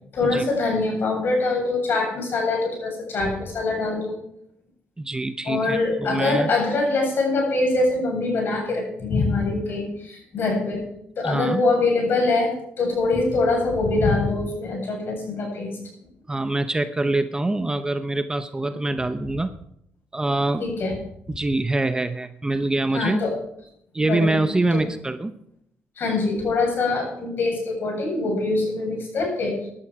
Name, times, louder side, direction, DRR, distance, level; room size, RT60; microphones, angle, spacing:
voice 1, 0.1-4.1 5.5-10.8 11.2-15.8 18.7-18.8 20.6-20.9 22.9-23.4 24.0-24.4 24.7-24.8 26.0-29.7, left 3 dB, 55° left, 1 dB, 7.9 m, -24 dB
voice 2, 5.0-6.5 11.2-11.6 16.3-19.5 20.1-20.7 21.3-23.2 23.9-25.3, right 2 dB, 15° right, 10 dB, 0.8 m, -24 dB
16.5 x 12.0 x 4.8 m, 0.72 s
cardioid pair, 85°, 4 cm